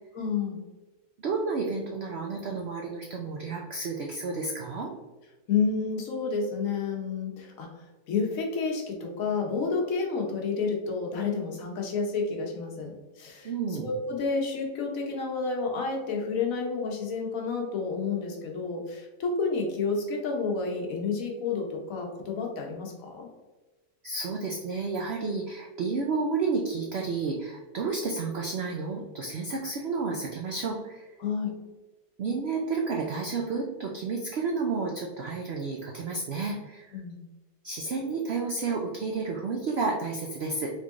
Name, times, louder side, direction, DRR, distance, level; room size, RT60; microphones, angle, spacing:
voice 1, 0.1-0.6 5.5-7.7 8.1-13.5 13.8-23.3 31.2-31.5 36.9-37.2, left 4 dB, 65° left, 0 dB, 1.3 m, -30 dB
voice 2, 1.2-4.9 13.4-13.9 24.0-31.1 32.2-37.0 37.6-40.7, right 4 dB, 75° right, 1 dB, 0.5 m, -31 dB
3.6 x 3.3 x 3.6 m, 1.1 s
omnidirectional pair, 1.7 m